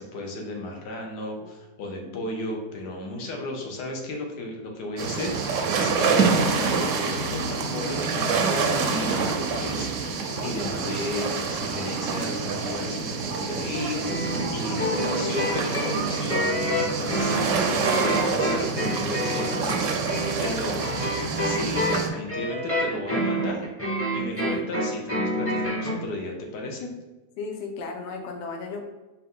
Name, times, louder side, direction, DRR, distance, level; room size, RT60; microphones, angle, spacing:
voice 1, 0.0-20.8 21.4-23.7 24.1-26.9, left 2 dB, 80° left, 2 dB, 1.4 m, -34 dB
sound 1, 5.0-22.1, right 5 dB, 65° right, 0.8 m, -27 dB
voice 2, 10.4-10.9 14.7-15.4 18.1-19.1 19.5-21.3 24.4-24.7 27.4-28.8, left 4 dB, 60° left, 2 dB, 0.8 m, -37 dB
sound 2, 14.0-26.0, equal, 10° left, 0.7 m, -28 dB
4.5 x 2.6 x 3.6 m, 1.1 s
omnidirectional pair, 1.8 m